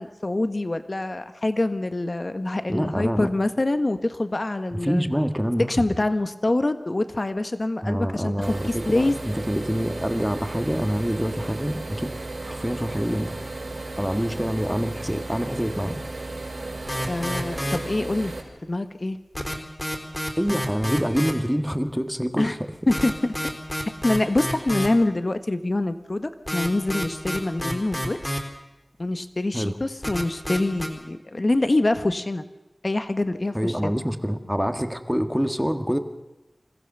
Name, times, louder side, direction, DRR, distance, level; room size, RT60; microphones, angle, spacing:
voice 1, 0.0-5.0 5.7-9.2 17.1-18.3 18.6-19.2 22.4-22.5 22.9-23.3 24.0-28.2 29.0-32.4 32.8-33.9, left 2 dB, 50° left, 10 dB, 1.4 m, -25 dB
voice 2, 2.7-3.3 4.7-5.8 7.8-12.1 12.4-13.4 14.0-16.0 20.4-22.6 29.5-29.8 33.5-36.0, equal, 5° right, 7 dB, 1.8 m, -26 dB
sound 1, 8.4-18.4, right 2 dB, 80° right, 5.3 m, -35 dB
sound 2, 16.9-17.8 19.3-21.3 22.7-24.9 26.5-28.4 30.0-30.9, equal, 20° left, 4.3 m, -28 dB
27.5 x 15.0 x 6.8 m, 1.0 s
wide cardioid pair, 45°, 0 cm